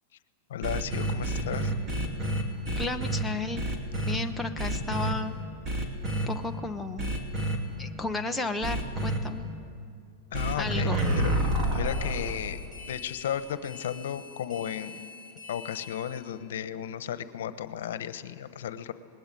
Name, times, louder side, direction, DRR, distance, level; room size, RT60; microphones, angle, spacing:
voice 1, 0.5-1.7 10.3-11.3 11.7-12.6 12.9-15.0 15.5-18.9, left 9 dB, 80° left, 12 dB, 1.2 m, -34 dB
sound 1, 0.6-3.2 3.6-4.2 4.6-5.1 5.6-6.3 7.0-7.6 8.6-9.2 10.3-16.2, right 1 dB, 25° right, 2.9 m, -30 dB
voice 2, 2.8-3.6 4.0-5.4 6.1-7.2 7.8-9.5 10.5-11.0, left 3 dB, 5° left, 3 dB, 0.9 m, -33 dB
25.5 x 20.0 x 9.2 m, 2.4 s
supercardioid pair, 155°, 0 cm